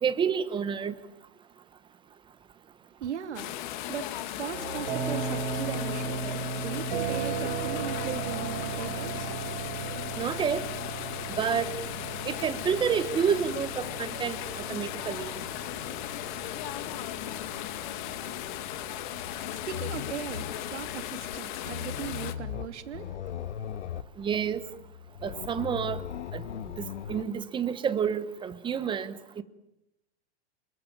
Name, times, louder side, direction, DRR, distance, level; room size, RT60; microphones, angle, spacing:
voice 1, 0.0-0.9 10.2-10.6 11.3-11.7 12.3-15.3 24.2-24.6 25.2-26.0 26.3-26.4 27.1-29.4, right 7 dB, 15° right, 1.0 m, -29 dB
voice 2, 2.8-3.6 3.9-9.3 10.0-10.1 19.3-23.1 23.7-23.8, right 9 dB, 90° right, 3.0 m, -38 dB
sound 1, 3.3-22.3, left 13 dB, 45° left, 2.2 m, -37 dB
sound 2, 4.5-21.0, right 5 dB, 45° right, 4.2 m, -37 dB
sound 3, 19.1-27.2, left 9 dB, 85° left, 1.7 m, -39 dB
28.5 x 22.0 x 8.8 m
supercardioid pair, 155°, 34 cm